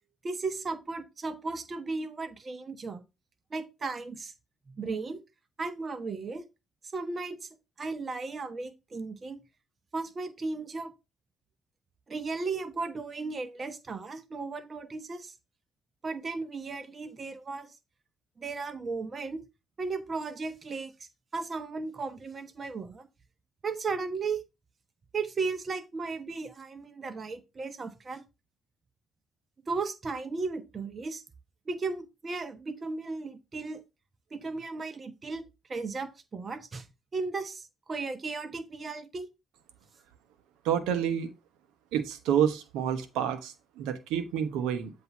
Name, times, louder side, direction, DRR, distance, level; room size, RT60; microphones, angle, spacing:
voice 1, 0.2-3.0 3.5-4.3 4.7-5.2 5.6-6.4 6.9-7.5 7.8-9.4 9.9-10.9 12.1-15.3 16.0-17.8 18.4-19.4 19.8-20.9 21.3-23.1 23.6-24.4 25.1-28.2 29.7-31.2 31.7-33.8 34.3-35.4 35.7-36.9 37.1-39.3, right 4 dB, 40° right, 1.1 m, -35 dB
voice 2, 40.6-41.3 41.9-44.9, right 9 dB, 80° right, 0.9 m, -29 dB
8.0 x 2.8 x 5.9 m
hypercardioid pair, 55°, 0 cm